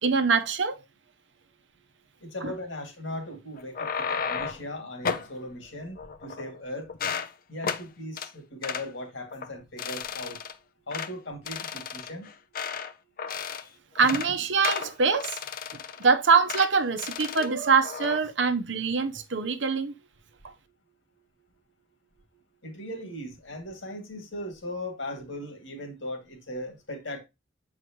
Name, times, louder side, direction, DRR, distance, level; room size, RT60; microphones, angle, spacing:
voice 1, 0.0-0.8 2.4-2.5 13.9-15.4 16.0-19.9, right 5 dB, 65° right, 0.9 m, -24 dB
voice 2, 2.2-6.9 7.5-10.4 10.9-12.3 22.6-27.2, left 1 dB, 70° left, 2.3 m, -38 dB
sound 1, 3.6-4.7 5.0-5.3 6.0-6.6 6.9-7.3 7.6-7.8 8.2-8.3 8.6-8.9 9.3-9.5 9.8-10.5 10.9-11.1 11.5-12.9 13.2-13.7 14.0-14.3 14.6-16.0 16.5-16.7 17.0-17.5 17.8-18.2, left 6 dB, 50° left, 0.6 m, -33 dB
7.9 x 4.8 x 3.0 m
head